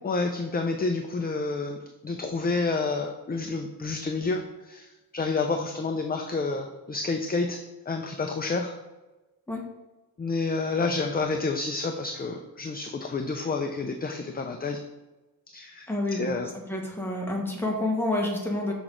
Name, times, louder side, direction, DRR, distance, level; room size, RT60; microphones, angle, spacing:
voice 1, 0.0-7.6 7.9-8.7 10.2-14.8 15.5-15.9 16.2-16.5, left 3 dB, 25° left, 5 dB, 0.4 m, -29 dB
voice 2, 15.9-18.7, left 1 dB, 5° left, -1 dB, 1.3 m, -29 dB
6.1 x 5.9 x 3.8 m, 1.1 s
wide cardioid pair, 160°, 37 cm